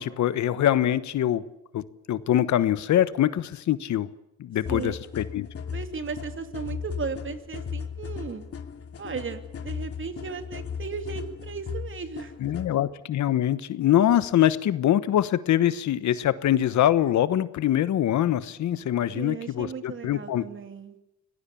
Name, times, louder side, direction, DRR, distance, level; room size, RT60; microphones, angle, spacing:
voice 1, 0.0-1.4 1.7-4.1 4.4-5.5 12.4-20.4, left 11 dB, 70° left, 15 dB, 1.2 m, -24 dB
sound 1, 4.7-12.7, left 6 dB, 50° left, 2.3 m, -36 dB
voice 2, 5.7-8.5 9.0-12.3 19.1-21.0, right 5 dB, 40° right, 8 dB, 2.7 m, -36 dB
24.0 x 18.0 x 8.5 m, 0.88 s
cardioid pair, 90°, 30 cm